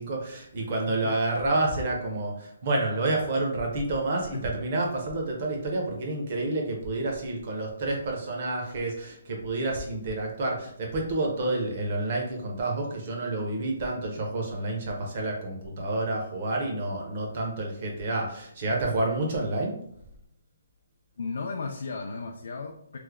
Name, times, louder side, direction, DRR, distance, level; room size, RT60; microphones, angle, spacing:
voice 1, 0.0-19.8, right 2 dB, 30° right, 0 dB, 0.7 m, -29 dB
voice 2, 0.6-1.1 4.3-4.5 21.2-23.0, left 4 dB, 60° left, 3 dB, 0.3 m, -35 dB
3.1 x 2.1 x 3.5 m, 0.71 s
hypercardioid pair, 180°, 0 cm